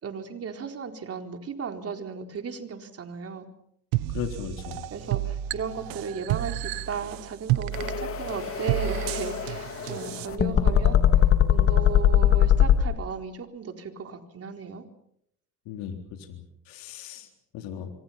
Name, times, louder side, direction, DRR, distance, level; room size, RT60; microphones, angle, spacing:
voice 1, 0.0-3.5 4.9-11.0 11.5-14.8, right 6 dB, 45° right, 5 dB, 4.2 m, -35 dB
sound 1, 3.9-10.3, right 14 dB, 90° right, 1.4 m, -31 dB
voice 2, 4.1-4.8 15.7-16.0 16.3-16.4 16.7-17.3 17.5-17.9, left 9 dB, 80° left, 4 dB, 3.9 m, -36 dB
sound 2, 7.7-12.8, left 10 dB, 40° left, 3.4 m, -21 dB
26.5 x 24.5 x 5.8 m, 0.73 s
supercardioid pair, 90°, 34 cm